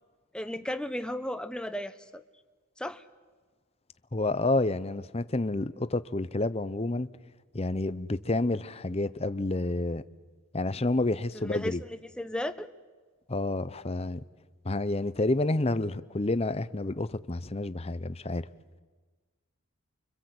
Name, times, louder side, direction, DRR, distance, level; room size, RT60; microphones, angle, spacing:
voice 1, 0.3-2.2 2.8-3.0 11.3-12.7, left 1 dB, 5° left, 0.9 m, -35 dB
voice 2, 4.1-7.1 7.5-10.0 10.5-11.8 13.3-14.2 14.6-18.5, left 2 dB, 30° left, 0.7 m, -29 dB
29.5 x 25.0 x 7.9 m
head